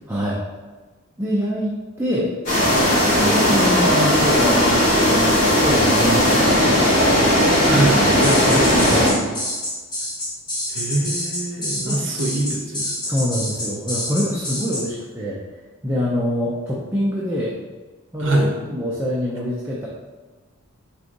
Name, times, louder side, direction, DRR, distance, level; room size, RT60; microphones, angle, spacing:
voice 1, 0.1-0.4 1.2-1.7 2.0-2.3 3.2-6.9 7.8-7.9 8.2-9.4 11.9-12.0 13.0-15.4 15.8-17.5 18.1-19.9, equal, 10° right, -6 dB, 0.4 m, -24 dB
sound 1, 2.5-9.1, equal, 35° left, 1.5 m, -17 dB
voice 2, 7.7-8.0 10.7-13.0 18.2-18.5, right 2 dB, 60° right, 0 dB, 0.8 m, -23 dB
sound 2, 8.2-14.8, left 1 dB, 20° left, 1.0 m, -27 dB
4.7 x 3.8 x 2.6 m, 1.3 s
head